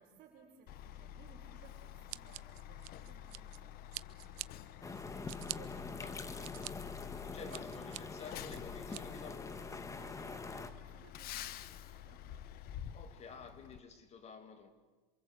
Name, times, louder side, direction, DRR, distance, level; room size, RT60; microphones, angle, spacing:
voice 1, 0.0-4.2 4.7-6.3 6.8-7.7 10.0-12.2, right 7 dB, 45° right, 5.2 m, -61 dB
Truck, 0.7-13.8, left 11 dB, 50° left, 1.2 m, -49 dB
Scissors, 2.1-3.6 3.9-4.5 5.0-5.6 6.1-6.7 7.2-8.0 8.5-9.0, right 26 dB, 70° right, 0.8 m, -45 dB
sound 1, 4.8-10.7, left 3 dB, 15° left, 1.6 m, -45 dB
voice 2, 6.0-6.7 7.1-9.7 12.9-14.7, left 5 dB, 35° left, 2.7 m, -52 dB
27.5 x 25.0 x 8.2 m
supercardioid pair, 125°, 20 cm